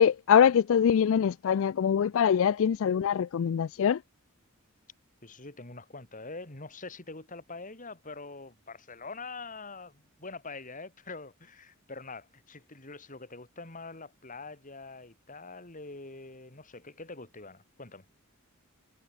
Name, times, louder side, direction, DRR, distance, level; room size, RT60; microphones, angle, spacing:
voice 1, 0.0-4.0, left 8 dB, 65° left, 0.3 m, -23 dB
voice 2, 5.2-18.1, left 3 dB, 40° left, 4.1 m, -44 dB
head